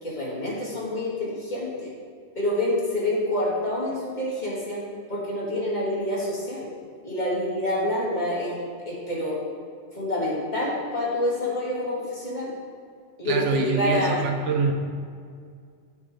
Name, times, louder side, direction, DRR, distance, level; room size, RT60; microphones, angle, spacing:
voice 1, 0.0-1.9 2.4-4.8 5.1-6.7 7.0-9.4 9.9-12.5 13.2-14.2, left 1 dB, 40° left, -6 dB, 2.3 m, -27 dB
voice 2, 13.2-14.7, right 5 dB, 80° right, 4 dB, 1.1 m, -25 dB
14.0 x 4.8 x 3.7 m, 2.1 s
omnidirectional pair, 1.2 m